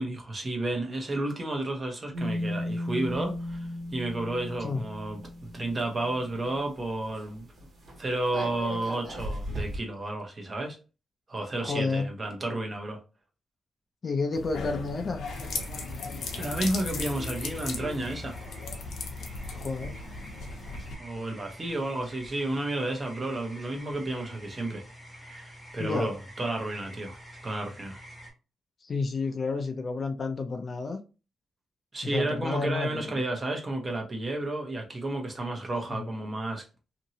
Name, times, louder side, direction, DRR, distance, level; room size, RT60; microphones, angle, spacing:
voice 1, 0.0-5.2 5.5-7.5 8.0-10.8 11.3-13.0 16.4-18.4 21.0-24.8 25.2-28.0 31.9-36.6, right 2 dB, 30° right, 0.8 m, -32 dB
sound 1, 2.1-6.8 7.1-7.3 7.6-9.8, left 1 dB, 55° right, 1.3 m, -36 dB
voice 2, 11.6-12.1 14.0-15.2 19.5-20.0 25.8-26.1 28.8-31.0 32.0-33.2 35.9-36.1, left 4 dB, 35° left, 0.4 m, -30 dB
sound 2, 14.3-21.0, left 4 dB, 70° left, 0.7 m, -36 dB
sound 3, 15.2-28.3, equal, 5° right, 1.1 m, -47 dB
2.8 x 2.7 x 2.7 m
cardioid pair, 140°, 0 cm